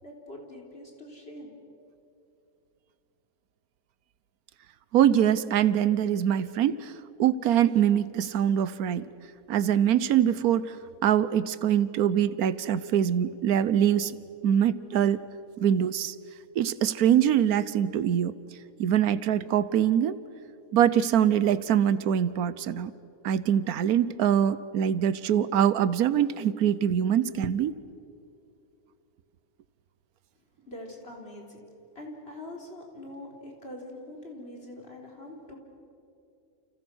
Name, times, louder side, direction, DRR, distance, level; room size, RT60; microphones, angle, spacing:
voice 1, 0.0-1.5 30.7-31.6 31.9-35.6, left 1 dB, 45° left, 0 dB, 4.3 m, -43 dB
voice 2, 4.9-6.9 7.2-9.1 9.5-10.8 11.0-14.1 14.4-15.2 15.6-16.1 16.5-18.3 18.8-20.2 20.7-22.9 23.2-27.8, right 9 dB, 85° right, 16 dB, 1.3 m, -23 dB
30.0 x 29.5 x 6.3 m, 2.7 s
omnidirectional pair, 1.5 m